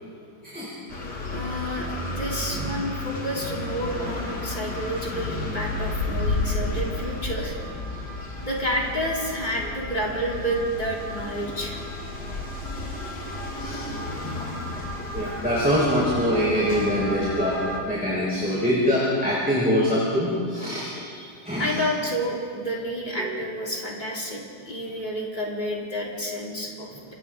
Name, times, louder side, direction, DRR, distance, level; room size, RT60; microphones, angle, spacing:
sound 1, 0.9-17.8, left 2 dB, 65° left, 3.4 m, -32 dB
voice 1, 1.3-7.5 8.4-11.8 15.1-15.3 21.6-27.1, equal, 25° left, -3 dB, 3.8 m, -30 dB
voice 2, 15.1-17.6 17.8-21.8 23.2-23.3, equal, 5° right, -7 dB, 5.0 m, -24 dB
29.0 x 26.0 x 4.0 m, 2.2 s
omnidirectional pair, 1.9 m